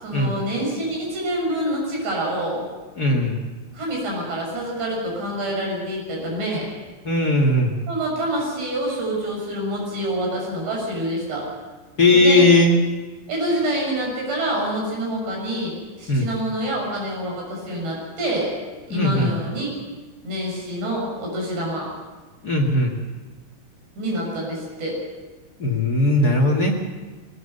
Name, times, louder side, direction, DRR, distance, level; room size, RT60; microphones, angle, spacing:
voice 1, 0.0-2.7 3.7-6.7 7.9-11.5 12.1-12.5 13.3-18.5 18.9-19.7 20.2-21.9 24.0-25.0, right 1 dB, 80° right, -1 dB, 8.9 m, -26 dB
voice 2, 3.0-3.4 7.0-7.7 12.0-12.8 16.1-16.3 18.9-19.3 22.4-22.9 25.6-26.7, left 2 dB, 35° left, 2 dB, 1.6 m, -18 dB
22.0 x 19.5 x 6.8 m, 1.3 s
omnidirectional pair, 4.8 m